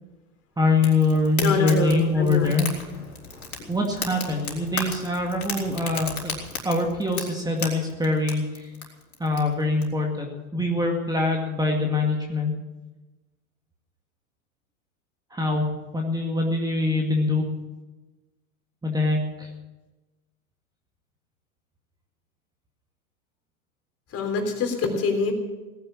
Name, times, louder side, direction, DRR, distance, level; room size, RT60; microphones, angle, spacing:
voice 1, 0.6-2.7 3.7-6.3 6.6-8.7 9.2-12.5 15.3-15.7 15.9-17.5 18.8-19.5, left 2 dB, 10° right, 1 dB, 2.1 m, -24 dB
Fire, 0.8-9.8, left 4 dB, 90° left, 3.8 m, -36 dB
voice 2, 1.4-2.5 3.6-3.7 24.1-25.3, left 4 dB, 35° left, 4 dB, 3.7 m, -25 dB
18.0 x 10.0 x 7.2 m, 1.1 s
hypercardioid pair, 105°, 42 cm